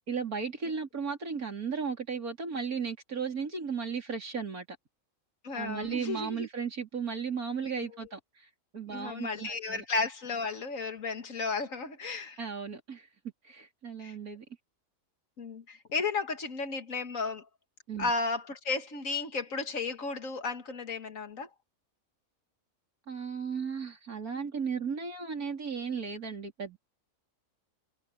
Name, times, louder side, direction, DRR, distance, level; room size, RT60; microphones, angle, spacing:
voice 1, 0.1-4.7 5.5-8.2 8.7-9.8 12.4-13.1 13.5-14.4 17.9-18.1 23.1-26.8, right 6 dB, 85° right, 4.2 m, -35 dB
voice 2, 5.4-6.5 7.7-8.1 8.9-12.4 14.0-14.1 15.4-17.5 18.0-21.5, left 4 dB, 65° left, 2.2 m, -34 dB
omnidirectional pair, 1.5 m